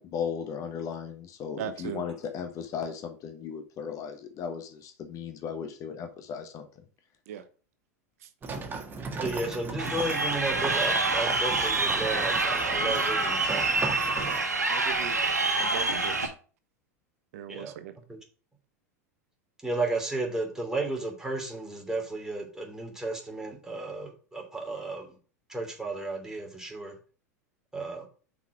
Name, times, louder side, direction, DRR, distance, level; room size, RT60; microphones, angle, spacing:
voice 1, 0.0-6.6, left 7 dB, 40° left, 1.2 m, -36 dB
voice 2, 1.6-2.1 7.3-7.5 8.2-8.3 14.2-14.4 14.7-15.2 15.6-16.3 17.3-17.9, right 9 dB, 60° right, 0.8 m, -38 dB
sound 1, 8.4-14.4, right 3 dB, 25° right, 1.7 m, -37 dB
voice 3, 9.2-13.7 17.5-17.7 18.1-18.2 19.6-25.1 25.5-26.9 27.7-28.1, right 2 dB, 5° right, 2.9 m, -33 dB
Crowd, 9.8-16.3, right 3 dB, 90° right, 1.2 m, -27 dB
5.8 x 4.9 x 5.9 m
figure-of-eight pair, 90°, 9 cm